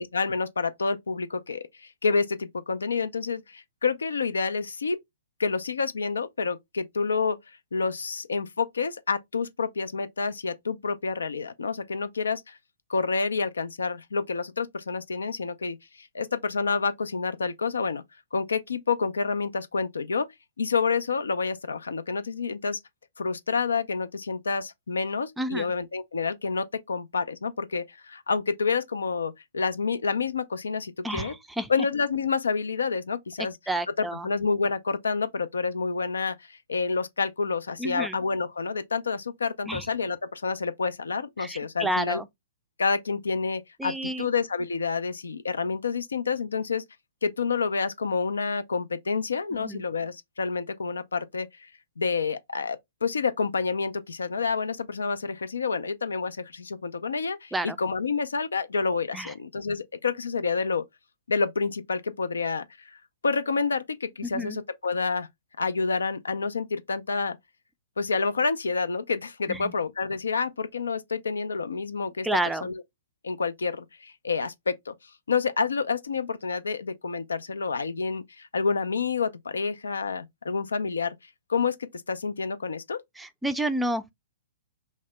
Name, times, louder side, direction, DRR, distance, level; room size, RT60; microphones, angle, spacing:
voice 1, 0.0-5.0 5.4-7.4 7.7-12.6 12.9-18.0 18.3-20.3 20.6-22.8 23.2-31.4 31.7-33.6 34.0-42.2 42.8-46.8 47.2-51.7 52.0-60.8 61.3-65.3 65.6-67.4 68.0-72.3 72.6-72.8 73.2-74.9 75.3-81.2 81.5-83.0, left 4 dB, 90° left, 0.4 m, -28 dB
voice 2, 25.4-25.7 31.0-31.7 33.4-34.3 37.8-38.2 39.7-39.9 41.4-42.3 43.8-44.3 49.5-49.8 57.5-57.8 59.1-59.3 64.2-64.6 69.5-69.7 72.2-72.7 83.2-84.1, right 1 dB, 5° right, 0.3 m, -30 dB
2.7 x 2.0 x 3.2 m
hypercardioid pair, 130°, 0 cm